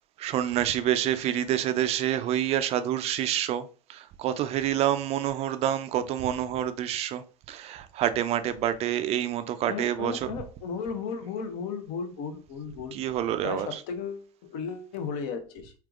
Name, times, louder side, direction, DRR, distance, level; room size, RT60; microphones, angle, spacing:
voice 1, 0.2-10.3 12.9-13.8, right 11 dB, 30° right, 0.4 m, -28 dB
voice 2, 9.6-13.0 13.4-15.7, left 6 dB, 45° left, 0.7 m, -35 dB
3.3 x 2.9 x 2.4 m
figure-of-eight pair, 85°, 21 cm